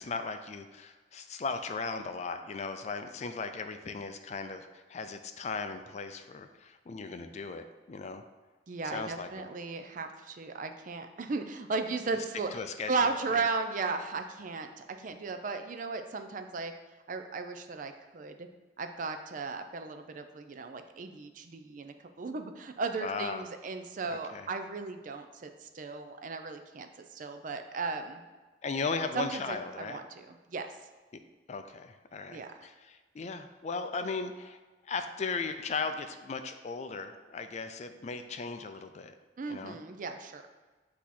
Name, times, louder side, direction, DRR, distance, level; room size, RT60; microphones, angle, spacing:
voice 1, 0.0-8.2 8.8-9.3 12.5-12.9 13.3-13.4 23.0-23.4 24.1-24.5 28.6-30.0 31.5-34.6 34.8-39.1 39.5-39.8, left 4 dB, 40° left, 8 dB, 0.4 m, -37 dB
voice 2, 8.7-12.6 12.9-16.7 17.1-18.5 18.8-28.2 29.1-30.8 32.3-32.7 39.4-40.4, right 4 dB, 45° right, 7 dB, 0.4 m, -36 dB
8.3 x 2.9 x 4.1 m, 1.3 s
head